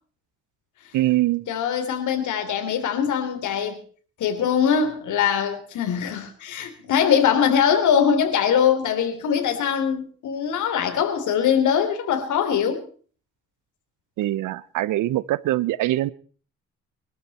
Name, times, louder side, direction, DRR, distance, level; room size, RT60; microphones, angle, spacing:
voice 1, 0.9-1.5 14.2-16.1, right 16 dB, 85° right, 21 dB, 0.8 m, -23 dB
voice 2, 1.5-3.8 4.2-12.8, left 8 dB, 75° left, 6 dB, 3.5 m, -22 dB
23.5 x 13.0 x 4.3 m, 0.43 s
cardioid pair, 90°, 30 cm